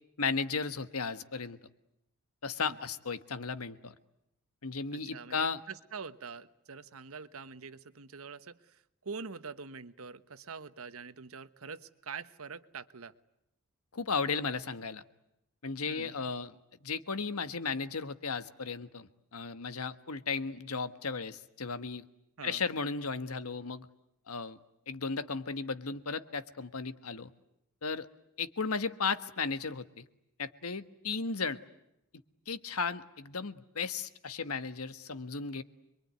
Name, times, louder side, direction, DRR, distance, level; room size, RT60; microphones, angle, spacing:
voice 1, 0.2-1.6 2.4-3.9 4.6-5.6 13.9-15.0 15.6-16.5 16.8-22.1 22.4-23.9 24.3-24.6 24.9-27.3 27.8-28.1 28.4-30.1 30.4-31.6 32.5-35.6, left 4 dB, 90° left, 12 dB, 1.4 m, -35 dB
voice 2, 4.9-13.1 15.9-16.2 22.4-22.6, right 5 dB, 75° right, 12 dB, 1.2 m, -45 dB
26.5 x 23.0 x 9.5 m, 0.83 s
head